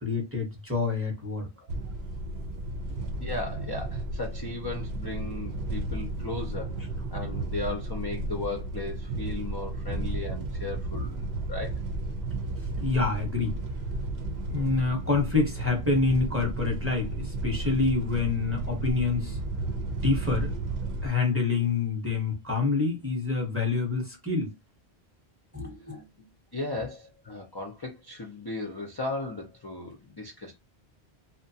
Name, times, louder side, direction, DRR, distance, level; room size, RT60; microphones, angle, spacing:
voice 1, 0.0-1.5 9.9-10.0 10.9-11.1 12.8-13.6 14.5-19.4 20.0-20.5 21.0-24.5 25.5-26.3, left 4 dB, 15° right, 0.7 m, -27 dB
sound 1, 1.7-21.1, right 2 dB, 70° right, 0.8 m, -33 dB
voice 2, 3.2-6.8 7.1-11.7 25.9-26.0 26.5-30.5, left 2 dB, 40° left, 0.3 m, -36 dB
2.7 x 2.2 x 2.7 m
omnidirectional pair, 1.1 m